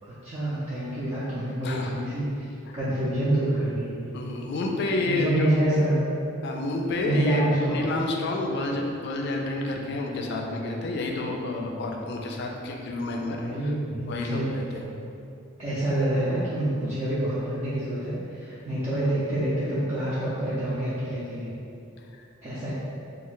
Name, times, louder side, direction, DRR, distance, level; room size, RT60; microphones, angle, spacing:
voice 1, 0.0-3.9 5.1-6.0 7.0-7.8 13.3-14.5 15.6-21.5 22.4-22.7, right 1 dB, 30° right, -10 dB, 0.4 m, -27 dB
voice 2, 4.1-5.5 6.4-13.7 14.1-14.9 22.1-22.2, left 2 dB, 55° left, 1 dB, 0.3 m, -29 dB
2.3 x 2.1 x 3.8 m, 2.6 s
head